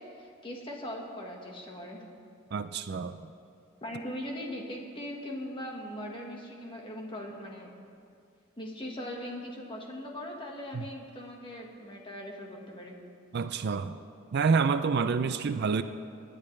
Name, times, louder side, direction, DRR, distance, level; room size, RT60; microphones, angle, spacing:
voice 1, 0.0-2.0 3.8-7.7 8.6-12.9, left 1 dB, 25° left, -1 dB, 1.5 m, -40 dB
voice 2, 2.5-3.2 10.7-10.8 13.3-14.0 14.3-15.8, right 5 dB, 50° right, 10 dB, 0.4 m, -27 dB
25.5 x 10.5 x 3.3 m, 2.4 s
head